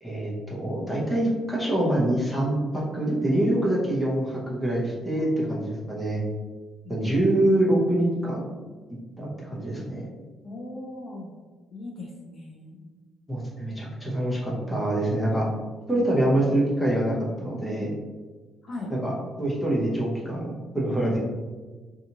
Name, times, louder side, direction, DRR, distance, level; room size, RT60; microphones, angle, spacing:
voice 1, 0.0-6.2 6.9-8.5 9.2-10.1 13.3-15.5 15.9-17.9 18.9-19.1 19.4-21.2, right 1 dB, 5° left, -6 dB, 0.8 m, -25 dB
voice 2, 5.2-5.7 6.8-7.6 10.4-11.3 11.7-12.9 18.6-18.9, left 2 dB, 50° left, -2 dB, 0.5 m, -39 dB
2.7 x 2.4 x 2.8 m, 1.3 s
cardioid pair, 115°, 0 cm